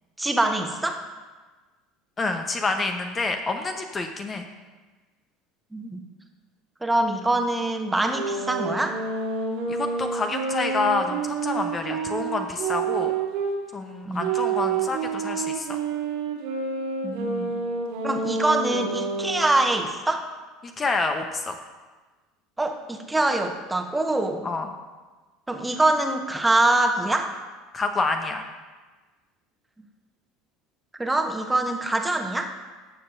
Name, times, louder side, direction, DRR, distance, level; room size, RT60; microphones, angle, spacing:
voice 1, 0.2-1.0 5.7-6.0 6.8-9.0 14.1-14.3 17.0-17.5 18.0-20.2 22.6-24.5 25.5-27.3 31.0-32.5, right 2 dB, 10° right, 4 dB, 1.2 m, -24 dB
voice 2, 2.2-4.4 9.7-13.1 13.7-15.7 20.8-21.6 24.4-24.7 27.7-28.4, left 3 dB, 25° left, 6 dB, 0.9 m, -28 dB
sound 1, 8.1-13.6 14.2-19.5, right 5 dB, 65° right, 1.8 m, -28 dB
18.0 x 7.2 x 2.6 m, 1.3 s
figure-of-eight pair, 70°, 0 cm